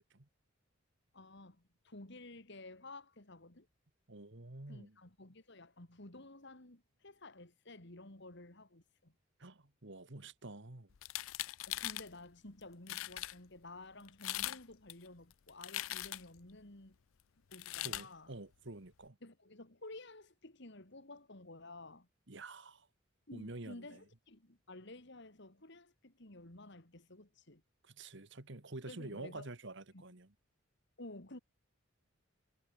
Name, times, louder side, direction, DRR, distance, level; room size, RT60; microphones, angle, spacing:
voice 1, 1.1-3.7 4.7-9.1 11.7-17.0 17.5-18.3 19.2-22.1 23.3-27.6 28.9-29.5 29.9-30.0 31.0-31.4, left 2 dB, 55° left, 2.9 m, -53 dB
voice 2, 4.1-5.0 9.4-10.9 17.8-19.2 22.3-22.9 23.3-24.0 27.8-30.3, right 2 dB, 60° right, 1.9 m, -48 dB
sound 1, 11.0-12.1 12.6-12.7 12.9-13.3 14.1-14.6 14.9-16.4 17.5-18.1, left 15 dB, 80° left, 0.5 m, -40 dB
head